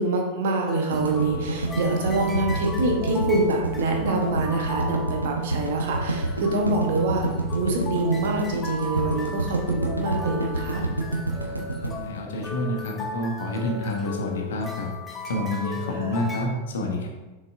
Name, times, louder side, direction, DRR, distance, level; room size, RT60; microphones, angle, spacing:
voice 1, 0.0-7.3 7.5-10.9 15.9-16.3, right 2 dB, 55° right, 1 dB, 1.1 m, -26 dB
sound 1, 0.7-16.5, left 2 dB, 15° left, 0.8 m, -36 dB
sound 2, 0.9-13.1, right 2 dB, 85° right, 0.8 m, -28 dB
voice 2, 11.4-14.9 15.3-17.1, left 1 dB, 60° left, 1 dB, 1.1 m, -29 dB
6.9 x 4.6 x 3.6 m, 1.2 s
figure-of-eight pair, 90°, 0 cm